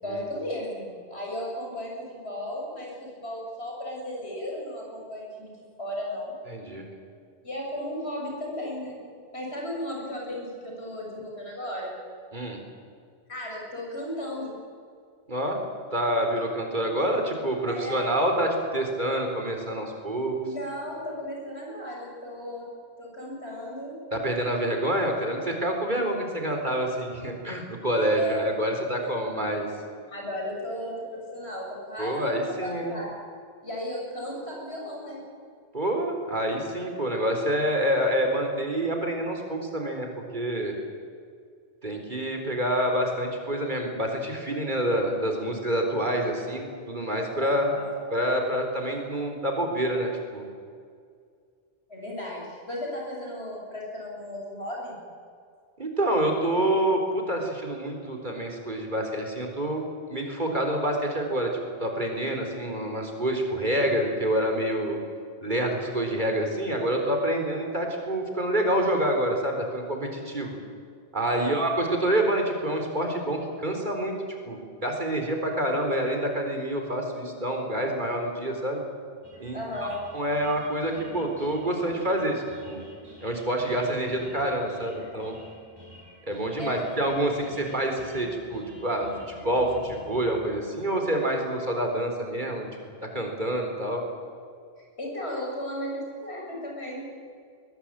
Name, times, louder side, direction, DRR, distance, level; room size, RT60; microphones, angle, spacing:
voice 1, 0.0-6.3 7.4-9.0 9.3-12.0 13.3-14.5 17.0-17.1 17.7-18.0 20.4-22.7 23.0-24.0 28.2-28.4 29.3-29.4 30.1-33.1 33.6-35.2 47.4-47.9 51.9-55.0 71.2-71.6 79.5-80.0 86.6-86.9 95.0-97.1, left 1 dB, 85° left, -2 dB, 7.5 m, -35 dB
voice 2, 6.5-6.8 12.3-12.6 15.3-15.6 15.9-20.4 24.1-29.7 32.0-33.0 35.7-40.1 40.3-40.7 41.8-47.7 48.1-50.4 55.8-59.8 60.1-61.5 61.8-65.0 65.4-70.6 71.1-74.1 74.5-78.8 79.4-82.8 83.2-85.4 86.3-89.1 89.4-92.7 93.1-94.0, right 1 dB, 45° right, 3 dB, 4.2 m, -27 dB
sound 1, 79.2-90.3, right 1 dB, 20° right, 7.1 m, -50 dB
21.5 x 21.5 x 8.9 m, 2.2 s
omnidirectional pair, 1.1 m